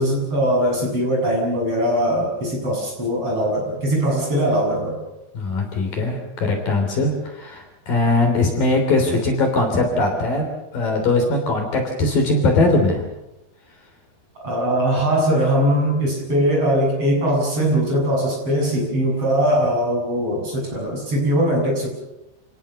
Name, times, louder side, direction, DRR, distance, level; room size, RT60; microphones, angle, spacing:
voice 1, 0.0-5.0 14.4-21.9, equal, 30° right, -1 dB, 8.1 m, -21 dB
voice 2, 5.3-10.4 10.7-13.1, left 2 dB, 50° left, 3 dB, 4.7 m, -20 dB
28.5 x 18.5 x 7.0 m, 0.93 s
omnidirectional pair, 5.3 m